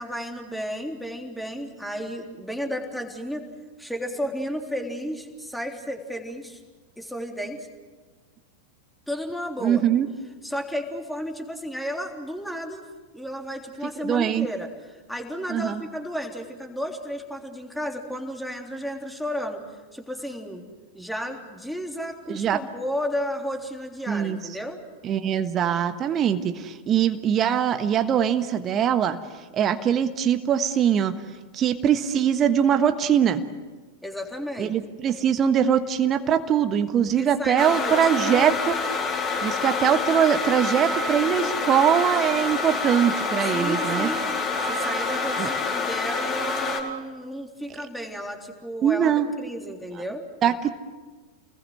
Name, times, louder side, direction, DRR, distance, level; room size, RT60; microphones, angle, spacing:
voice 1, 0.0-3.5 3.8-6.6 7.0-7.7 9.1-9.8 10.4-12.9 13.1-14.7 15.1-19.6 19.9-20.6 20.9-24.8 34.0-34.8 37.2-38.6 43.5-44.2 44.6-50.2, equal, ahead, 3 dB, 3.5 m, -33 dB
voice 2, 9.6-10.1 14.0-14.5 15.5-15.8 22.3-22.6 24.1-24.4 25.0-29.2 29.5-31.1 31.5-33.4 34.6-38.8 39.4-44.1 45.4-45.5 48.8-49.3 50.4-50.7, right 9 dB, 30° right, 9 dB, 1.4 m, -22 dB
sound 1, 37.6-46.8, left 4 dB, 25° left, 4.5 m, -27 dB
29.5 x 21.0 x 7.8 m, 1.3 s
figure-of-eight pair, 90°, 0 cm